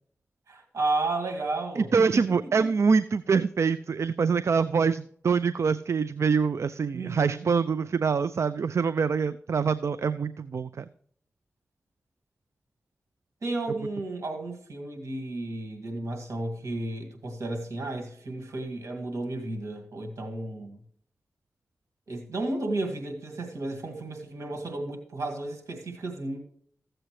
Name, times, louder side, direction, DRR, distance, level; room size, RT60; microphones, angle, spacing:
voice 1, 0.5-2.7 6.9-7.5 13.4-20.8 22.1-26.4, right 2 dB, 90° right, 4 dB, 2.0 m, -33 dB
voice 2, 1.8-10.9, right 5 dB, 65° right, 15 dB, 0.4 m, -25 dB
14.5 x 7.7 x 3.2 m, 0.62 s
cardioid pair, 55°, 5 cm